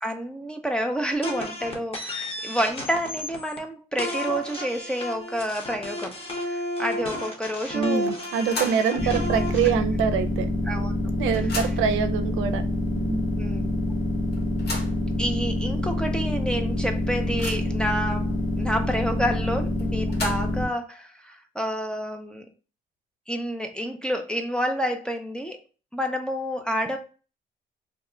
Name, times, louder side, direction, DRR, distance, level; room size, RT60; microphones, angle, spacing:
voice 1, 0.0-6.2 6.5-8.0 9.0-9.2 10.7-10.9 13.4-13.8 15.2-22.5 23.3-25.6 25.9-27.0, equal, 5° left, 3 dB, 0.5 m, -29 dB
sound 1, 1.2-3.6 4.0-9.7, left 1 dB, 30° left, 1.0 m, -32 dB
voice 2, 7.7-10.5 11.2-12.6 13.0-13.3, right 7 dB, 90° right, 9 dB, 0.5 m, -25 dB
sound 2, 8.2-9.0 9.4-9.5 10.5-10.6 10.9-12.0 12.8-12.9 13.3-13.4 14.3-15.0 15.7-15.8 16.2-16.3 16.8-17.8 19.8-20.7, left 2 dB, 55° left, 1.1 m, -35 dB
sound 3, 9.0-20.6, left 1 dB, 75° left, 1.1 m, -26 dB
2.9 x 2.2 x 3.7 m, 0.35 s
cardioid pair, 90°, 20 cm